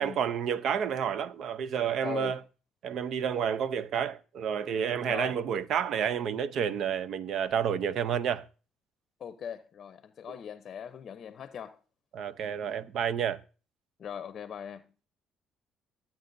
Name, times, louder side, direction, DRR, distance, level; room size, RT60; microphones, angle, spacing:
voice 1, 0.0-2.4 2.8-8.5 12.1-13.4, right 8 dB, 65° right, 0.6 m, -30 dB
voice 2, 2.0-2.4 5.0-5.4 9.2-11.8 14.0-14.9, left 8 dB, 55° left, 0.6 m, -40 dB
14.5 x 8.7 x 2.6 m
supercardioid pair, 80°, 0 cm